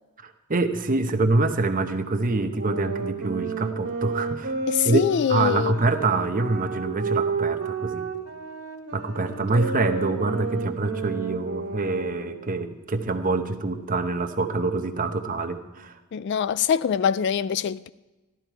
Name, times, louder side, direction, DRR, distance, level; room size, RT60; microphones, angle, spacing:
voice 1, 0.2-4.5 4.8-8.1 8.9-16.0, right 3 dB, 40° right, 0.9 m, -25 dB
sound 1, 2.5-12.5, right 4 dB, 80° right, 1.8 m, -31 dB
voice 2, 4.7-5.8 16.1-17.9, left 7 dB, 50° left, 0.3 m, -24 dB
13.5 x 12.0 x 4.6 m
head